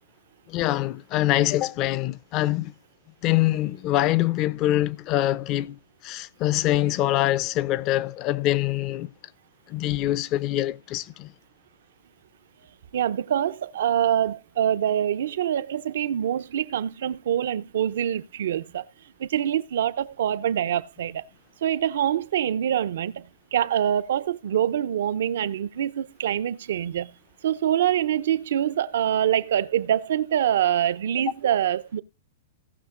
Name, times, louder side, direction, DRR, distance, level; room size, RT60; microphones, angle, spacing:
voice 1, 0.5-2.7 3.2-9.1 9.7-11.3, left 15 dB, 35° left, 0.6 m, -24 dB
voice 2, 12.9-18.9 19.2-21.2 21.6-27.2 27.4-32.0, right 10 dB, 75° right, 0.7 m, -25 dB
17.5 x 5.9 x 3.8 m
hypercardioid pair, 145°, 0 cm